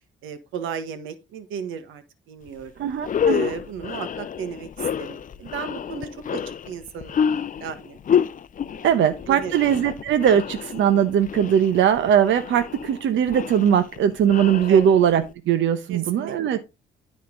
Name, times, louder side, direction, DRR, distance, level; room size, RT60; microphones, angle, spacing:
voice 1, 0.2-2.8 3.3-8.0 8.7-9.5 14.7-14.8 15.9-16.6, right 7 dB, 90° right, 1.5 m, -35 dB
sound 1, 2.5-2.6 3.0-15.3, left 8 dB, 40° left, 0.6 m, -29 dB
voice 2, 2.8-3.5 8.8-16.6, right 9 dB, 75° right, 0.9 m, -20 dB
13.0 x 4.3 x 3.8 m
cardioid pair, 90°, 20 cm